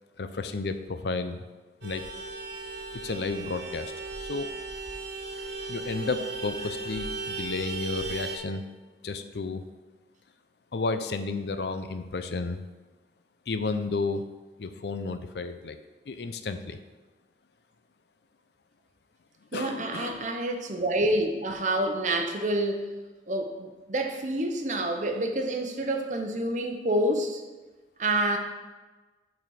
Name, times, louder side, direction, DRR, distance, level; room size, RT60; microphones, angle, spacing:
voice 1, 0.2-1.4 1.8-2.0 3.0-3.9 4.2-4.5 5.7-8.6 9.0-9.7 10.7-12.7 13.5-14.2 14.6-15.8 16.1-16.8 19.5-20.2, left 3 dB, 70° left, 9 dB, 0.5 m, -32 dB
Vehicle horn car horn honking, 1.8-8.4, right 3 dB, 85° right, 1.3 m, -36 dB
voice 2, 19.5-22.9 23.3-27.4 28.0-28.4, right 1 dB, 45° right, 4 dB, 0.8 m, -28 dB
6.9 x 4.1 x 6.3 m, 1.2 s
head